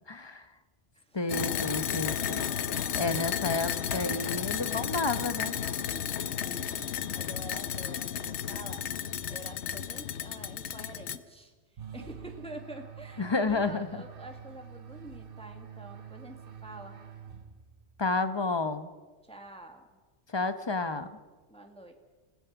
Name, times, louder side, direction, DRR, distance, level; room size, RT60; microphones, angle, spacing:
voice 1, 0.1-0.4 1.1-5.6 13.2-13.9 18.0-18.9 20.3-21.1, left 3 dB, 25° left, 10 dB, 1.0 m, -31 dB
voice 2, 0.9-1.3 3.1-3.5 6.0-8.9 9.3-17.0 19.3-19.9 21.5-21.9, right 1 dB, 5° left, 3 dB, 1.7 m, -47 dB
sound 1, 1.3-11.2, left 8 dB, 70° left, 1.1 m, -33 dB
sound 2, 11.8-17.9, right 7 dB, 50° right, 1.2 m, -46 dB
28.5 x 17.0 x 6.0 m, 1.3 s
omnidirectional pair, 1.2 m